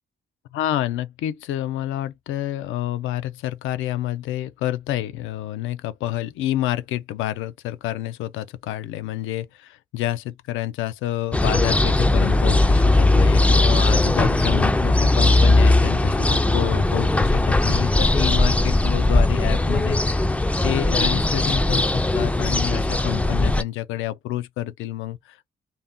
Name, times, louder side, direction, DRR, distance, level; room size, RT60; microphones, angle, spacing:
voice 1, 0.5-20.0 20.6-25.5, left 13 dB, 85° left, 0.4 m, -28 dB
sound 1, 11.3-23.6, left 2 dB, 5° left, 0.3 m, -19 dB
2.6 x 2.1 x 3.4 m
cardioid pair, 90°, 20 cm